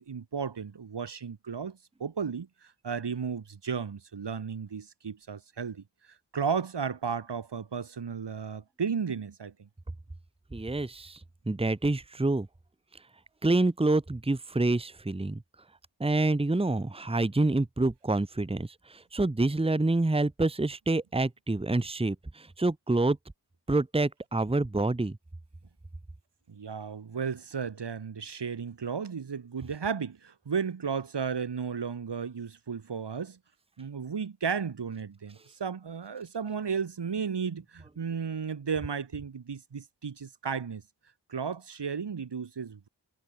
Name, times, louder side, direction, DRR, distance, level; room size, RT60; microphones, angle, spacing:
voice 1, 0.0-5.8 6.3-9.7 26.5-33.4 33.8-40.8 41.3-42.9, right 6 dB, 85° right, 2.8 m, -34 dB
voice 2, 10.5-11.2 11.5-12.5 13.4-15.4 16.0-23.2 23.7-25.2, right 2 dB, 15° right, 1.1 m, -27 dB
wide cardioid pair, 70°, 40 cm